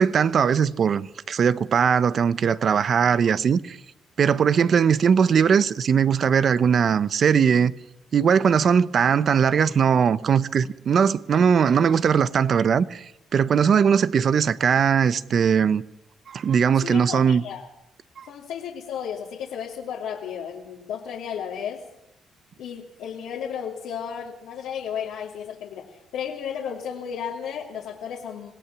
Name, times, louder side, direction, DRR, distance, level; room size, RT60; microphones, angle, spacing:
voice 1, 0.0-3.8 4.2-7.7 8.1-13.0 13.3-15.8 16.3-17.4 18.2-18.3, right 7 dB, 55° right, 0.8 m, -20 dB
voice 2, 16.8-17.6 18.3-21.8 22.6-28.5, left 8 dB, 90° left, 2.7 m, -33 dB
25.5 x 17.5 x 6.1 m
cardioid pair, 90°, 0 cm